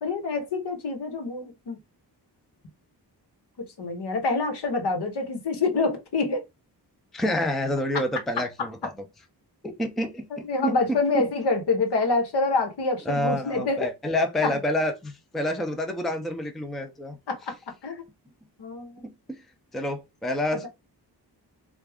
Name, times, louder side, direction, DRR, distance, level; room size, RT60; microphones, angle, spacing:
voice 1, 0.0-1.8 3.8-6.4 8.6-8.9 10.3-13.9 14.4-14.6 17.3-17.5 17.8-18.0 18.6-19.1 20.5-20.7, left 3 dB, 70° left, 1.1 m, -26 dB
voice 2, 7.1-8.9 9.6-11.0 13.1-17.2 19.0-19.4 19.7-20.7, left 1 dB, ahead, 0.4 m, -28 dB
3.4 x 2.3 x 3.4 m
wide cardioid pair, 140°, 42 cm